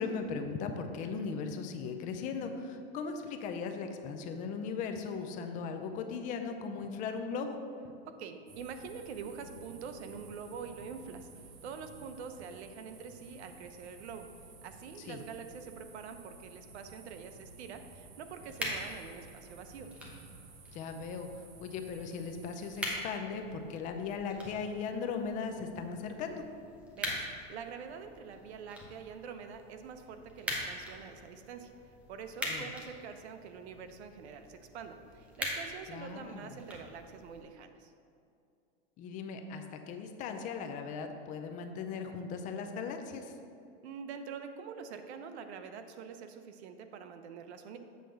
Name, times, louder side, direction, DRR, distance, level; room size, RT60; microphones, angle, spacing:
voice 1, 0.0-7.6 15.1-15.2 20.7-21.3 21.6-26.4 32.5-32.7 35.9-36.5 39.0-43.3, left 5 dB, 25° left, 6 dB, 0.4 m, -38 dB
voice 2, 8.1-14.3 14.6-19.9 26.9-31.7 32.1-37.9 43.8-47.8, right 6 dB, 85° right, 7 dB, 0.8 m, -45 dB
sound 1, 8.5-23.0, right 3 dB, 65° right, 1.3 m, -54 dB
sound 2, 18.4-37.4, equal, 5° right, 0.9 m, -43 dB
7.7 x 3.4 x 6.3 m, 2.5 s
supercardioid pair, 150°, 32 cm